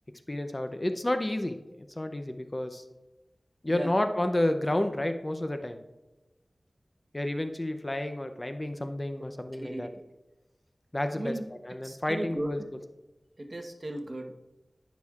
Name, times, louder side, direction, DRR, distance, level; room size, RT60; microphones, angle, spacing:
voice 1, 0.3-2.8 3.6-5.8 7.1-9.9 10.9-12.6, left 1 dB, 30° left, 8 dB, 0.6 m, -30 dB
voice 2, 9.6-10.0 11.1-11.5 11.8-12.7 13.4-14.3, right 1 dB, 45° right, 4 dB, 1.0 m, -36 dB
18.0 x 6.1 x 2.4 m, 1.1 s
wide cardioid pair, 60°, 0 cm